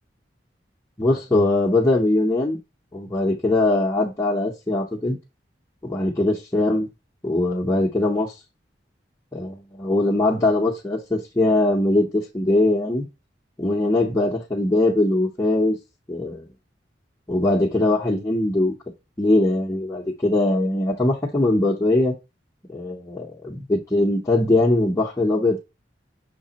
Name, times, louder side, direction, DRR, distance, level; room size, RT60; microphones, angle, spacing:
voice 1, 1.0-2.6 2.9-5.2 5.8-6.9 7.2-8.3 9.3-13.1 13.6-15.8 16.1-16.5 17.3-18.7 19.2-22.1 22.7-25.6, left 2 dB, 15° left, 0.7 m, -21 dB
5.8 x 3.2 x 2.8 m
head